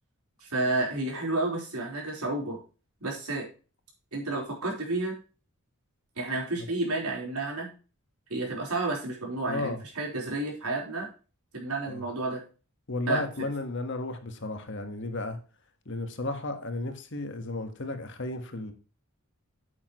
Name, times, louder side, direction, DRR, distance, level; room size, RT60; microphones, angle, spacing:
voice 1, 0.4-2.6 3.0-3.5 4.1-5.2 6.2-7.7 8.3-11.1 11.5-12.4 13.1-13.5, right 2 dB, 90° right, -1 dB, 4.2 m, -31 dB
voice 2, 9.5-9.8 11.9-12.0 12.9-15.4 15.8-18.7, left 2 dB, 55° left, 7 dB, 1.5 m, -33 dB
9.1 x 8.5 x 3.1 m, 0.34 s
head